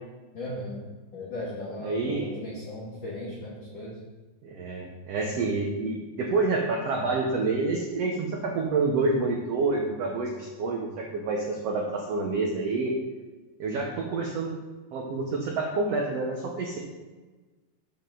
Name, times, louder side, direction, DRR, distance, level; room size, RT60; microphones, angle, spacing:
voice 1, 0.3-0.8 1.1-4.0, left 1 dB, 50° left, -7 dB, 1.5 m, -37 dB
voice 2, 1.8-2.3 4.4-12.9 13.6-14.5 14.9-16.8, right 3 dB, 80° right, 0 dB, 1.4 m, -28 dB
8.1 x 7.0 x 3.8 m, 1.3 s
omnidirectional pair, 4.0 m